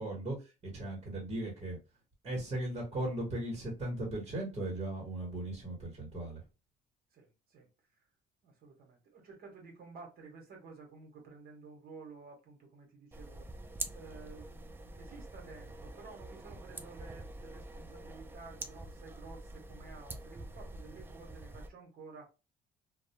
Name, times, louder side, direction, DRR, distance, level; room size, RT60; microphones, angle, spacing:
voice 1, 0.0-1.8 2.2-6.4, right 1 dB, 35° right, 1.1 m, -37 dB
voice 2, 7.1-7.7 8.4-13.5 13.9-22.3, right 4 dB, 65° right, 1.0 m, -52 dB
sound 1, 13.1-21.7, right 2 dB, 15° right, 0.3 m, -46 dB
2.2 x 2.1 x 2.8 m
cardioid pair, 110°, 17 cm